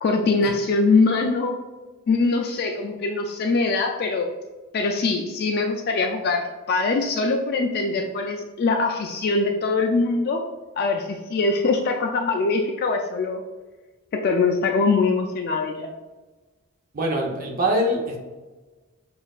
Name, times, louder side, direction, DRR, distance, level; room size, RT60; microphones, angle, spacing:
voice 1, 0.0-1.5 2.1-4.3 4.7-10.4 10.8-13.4 14.1-15.9, left 3 dB, 45° left, 3 dB, 0.3 m, -22 dB
voice 2, 16.9-18.2, right 1 dB, 40° right, 0 dB, 0.7 m, -24 dB
6.0 x 2.4 x 2.4 m, 1.2 s
head